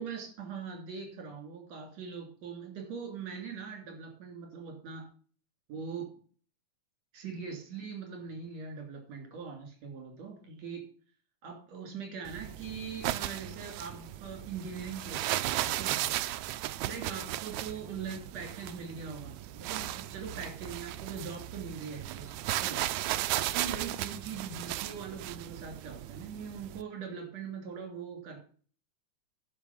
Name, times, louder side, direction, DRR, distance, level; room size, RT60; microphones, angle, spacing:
voice 1, 0.0-5.1 5.7-6.1 7.1-10.9 11.4-16.0 16.8-22.3 22.6-22.8 23.5-28.4, right 6 dB, 60° right, 2 dB, 4.3 m, -41 dB
sound 1, 12.3-26.8, right 14 dB, 80° right, 1.9 m, -36 dB
11.0 x 5.7 x 7.2 m, 0.43 s
omnidirectional pair, 3.5 m